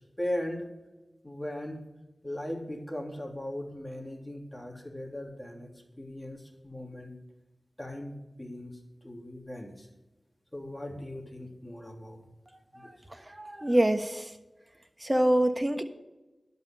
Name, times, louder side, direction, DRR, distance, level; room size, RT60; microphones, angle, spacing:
voice 1, 0.2-0.7 1.2-1.8 2.2-5.7 6.0-7.1 7.8-9.9 10.5-12.2 12.7-12.9, left 1 dB, 15° left, 1 dB, 3.1 m, -38 dB
voice 2, 12.7-14.3 15.0-15.8, right 1 dB, 20° right, 7 dB, 1.3 m, -26 dB
11.5 x 5.5 x 8.5 m, 1.1 s
cardioid pair, 45°, 0 cm